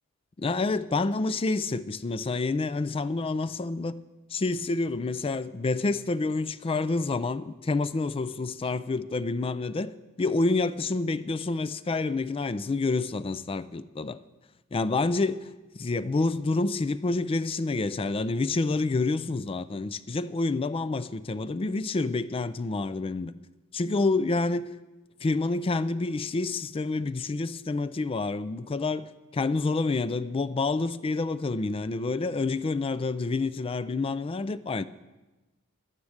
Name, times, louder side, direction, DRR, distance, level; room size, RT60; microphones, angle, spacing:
voice 1, 0.4-3.9 4.3-14.2 14.7-15.5 15.8-23.3 23.7-24.7 25.2-34.8, left 3 dB, 25° left, 0.4 m, -28 dB
11.5 x 10.5 x 6.5 m
head